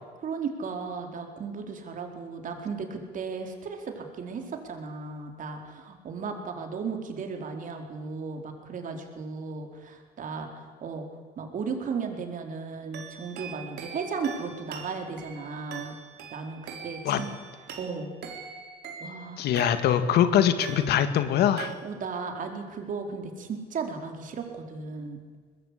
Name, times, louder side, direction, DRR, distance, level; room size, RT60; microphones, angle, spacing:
voice 1, 0.2-11.1 11.4-16.0 16.3-17.3 17.8-18.1 19.0-19.5 21.8-25.2, right 5 dB, 50° right, 4 dB, 4.4 m, -35 dB
sound 1, 12.9-20.2 20.6-21.3 21.6-22.2, right 6 dB, 80° right, 4.1 m, -42 dB
voice 2, 19.4-21.7, left 10 dB, 75° left, 10 dB, 2.0 m, -23 dB
23.0 x 20.5 x 8.6 m, 1.5 s
cardioid pair, 110°, 17 cm